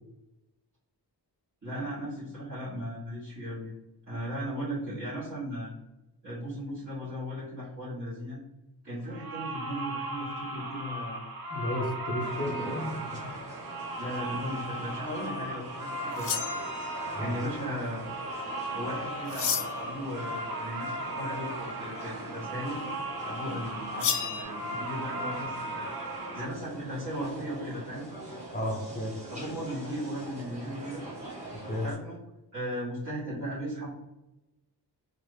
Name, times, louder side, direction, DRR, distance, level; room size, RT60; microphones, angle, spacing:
voice 1, 1.6-3.7 4.1-5.7 6.2-8.4 8.8-11.2 12.4-12.7 14.0-16.4 17.2-18.0 18.7-22.8 23.2-25.9 26.3-28.1 29.2-31.0 31.8-32.2 32.5-33.9, equal, 40° right, -14 dB, 1.4 m, -37 dB
sound 1, 9.1-26.5, right 1 dB, 60° right, 0.6 m, -37 dB
voice 2, 11.5-13.3 17.1-17.3 28.5-29.1 31.6-31.9, equal, 20° left, 0 dB, 0.6 m, -33 dB
sound 2, 12.2-31.9, right 1 dB, 15° right, 1.3 m, -44 dB
sound 3, 16.1-17.1 19.3-20.0 24.0-24.4, left 8 dB, 80° left, 0.6 m, -31 dB
2.9 x 2.5 x 3.1 m, 1.0 s
wide cardioid pair, 165°, 41 cm